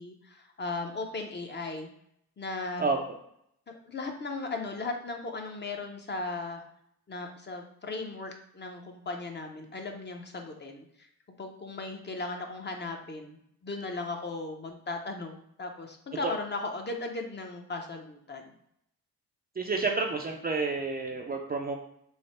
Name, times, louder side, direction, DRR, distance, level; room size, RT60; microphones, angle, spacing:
voice 1, 0.0-1.9 2.4-2.9 3.7-6.6 7.1-11.1 11.4-18.4, left 3 dB, 30° left, 3 dB, 0.5 m, -37 dB
voice 2, 19.6-21.8, right 4 dB, 25° right, 2 dB, 0.4 m, -29 dB
3.2 x 2.0 x 4.1 m, 0.73 s
cardioid pair, 90°, 37 cm